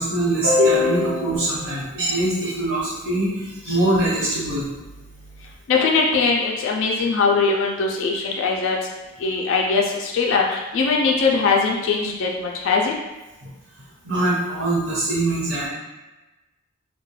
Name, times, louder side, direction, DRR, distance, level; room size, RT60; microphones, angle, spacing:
voice 1, 0.0-4.7 14.0-15.7, equal, 70° right, -7 dB, 1.0 m, -22 dB
voice 2, 5.7-8.8 9.2-12.9, left 4 dB, 60° left, -1 dB, 0.3 m, -21 dB
2.3 x 2.1 x 3.0 m, 1.1 s
head